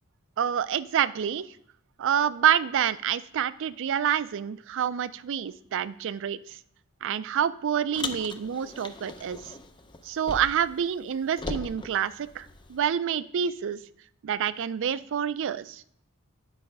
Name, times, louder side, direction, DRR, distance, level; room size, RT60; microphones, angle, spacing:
voice 1, 0.4-1.5 2.0-6.6 7.0-9.5 10.0-13.8 14.2-15.8, right 9 dB, 60° right, 16 dB, 0.4 m, -27 dB
Car, 7.9-10.8 11.0-12.8, left 2 dB, 20° left, 0.5 m, -39 dB
10.0 x 4.8 x 5.4 m, 0.67 s
head